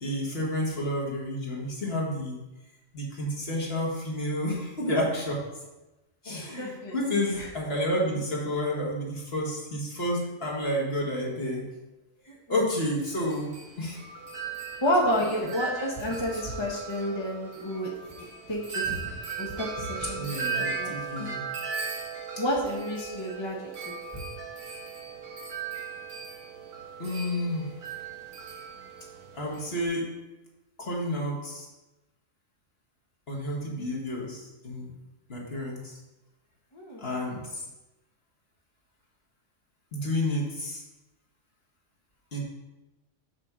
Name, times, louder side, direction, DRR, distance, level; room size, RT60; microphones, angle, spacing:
voice 1, 0.0-2.4 2.9-5.4 6.2-11.7 12.3-14.0 15.2-15.3 16.3-16.6 20.2-21.5 27.0-27.7 29.3-30.1 30.8-31.7 33.3-34.9 35.3-36.0 37.0-37.6 39.9-40.8 42.3-42.4, left 1 dB, 45° left, -3 dB, 1.9 m, -30 dB
voice 2, 6.6-7.5 12.3-12.6 14.8-17.9 18.5-19.1 19.4-20.9 21.2-21.3 22.4-24.2 36.7-37.2, equal, 20° left, -2 dB, 0.9 m, -30 dB
Wind chime, 13.0-29.9, right 6 dB, 75° right, 1.6 m, -37 dB
6.3 x 4.3 x 6.1 m, 1.0 s
omnidirectional pair, 1.4 m